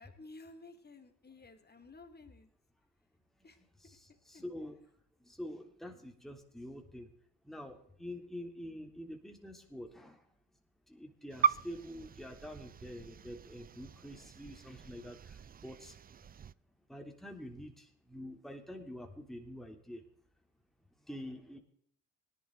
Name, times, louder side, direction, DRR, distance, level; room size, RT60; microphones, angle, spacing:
voice 1, 0.0-2.5 3.4-3.6 4.3-4.4, left 3 dB, 25° left, 6 dB, 2.7 m, -54 dB
voice 2, 3.4-4.9 5.2-7.1 7.4-10.3 10.9-16.0 16.9-20.0 21.0-21.6, left 1 dB, ahead, 3 dB, 3.0 m, -47 dB
sound 1, 11.3-16.5, right 7 dB, 25° right, 0.4 m, -38 dB
18.0 x 11.0 x 3.9 m, 0.64 s
hypercardioid pair, 60°, 39 cm